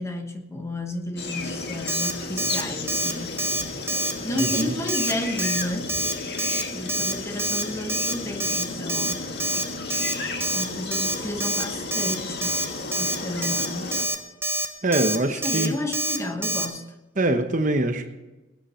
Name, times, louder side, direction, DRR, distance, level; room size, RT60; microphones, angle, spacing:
voice 1, 0.0-3.4 4.2-5.9 6.7-9.3 10.5-12.6 13.0-14.0 15.2-16.9, left 1 dB, 15° left, 5 dB, 1.3 m, -32 dB
sound 1, 1.2-14.1, left 3 dB, 60° left, 1.7 m, -33 dB
Alarm, 1.9-2.1 2.4-2.6 2.9-3.1 3.4-3.6 3.9-4.1 4.4-4.6 4.9-5.1 5.4-5.6 5.9-6.1 6.4-6.6 6.9-7.1 7.4-7.6 7.9-8.1 8.4-8.6 8.9-9.1 9.4-9.6 9.9-10.1 10.4-10.6 10.9-11.1 11.4-11.6 11.9-12.1 12.4-12.6 12.9-13.2 13.4-13.7 13.9-14.2 14.4-14.7 14.9-15.2 15.4-15.7 15.9-16.2 16.4-16.7, right 1 dB, 10° right, 1.2 m, -26 dB
voice 2, 4.4-4.7 14.8-15.8 17.2-18.1, right 2 dB, 40° right, 7 dB, 1.1 m, -23 dB
20.0 x 9.7 x 4.4 m, 1.1 s
head